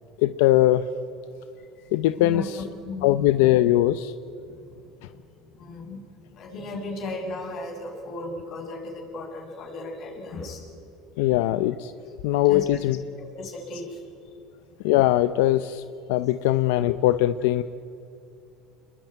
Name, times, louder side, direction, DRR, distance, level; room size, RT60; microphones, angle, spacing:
voice 1, 0.2-0.8 1.9-2.6 3.0-4.1 11.2-11.9 12.2-13.0 14.8-15.8 16.1-17.6, left 14 dB, 85° left, 12 dB, 0.7 m, -21 dB
voice 2, 1.6-3.5 4.6-4.7 5.1-5.2 5.6-6.0 6.3-10.6 12.3-12.8 13.2-14.3, left 2 dB, 45° left, 2 dB, 7.6 m, -36 dB
29.0 x 21.0 x 9.4 m, 2.6 s
cardioid pair, 135°, 0 cm